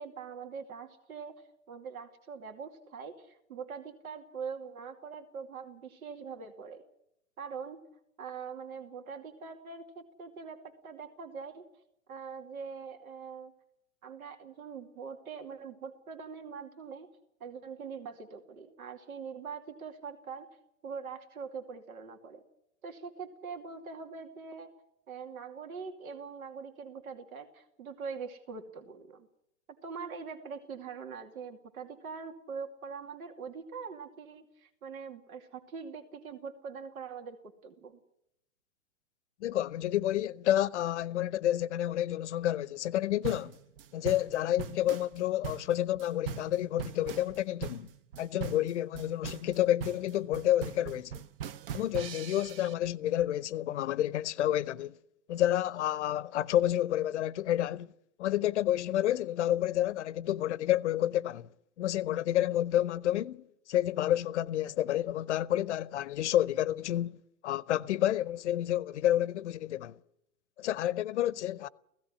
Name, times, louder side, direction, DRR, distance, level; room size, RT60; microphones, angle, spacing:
voice 1, 0.0-6.8 7.4-7.8 8.2-11.6 12.1-13.5 14.0-17.1 17.4-20.5 20.8-22.4 22.8-24.7 25.1-29.3 29.8-37.4 37.6-38.0, right 5 dB, 80° right, 2.6 m, -43 dB
voice 2, 39.4-43.6 43.9-47.9 48.2-51.2 51.7-55.0 55.3-57.9 58.2-61.5 61.8-67.2 67.4-70.0 70.6-71.7, left 12 dB, 55° left, 0.7 m, -29 dB
sound 1, 43.2-52.7, right 8 dB, 40° right, 0.8 m, -40 dB
16.5 x 16.0 x 10.0 m
hypercardioid pair, 150°, 42 cm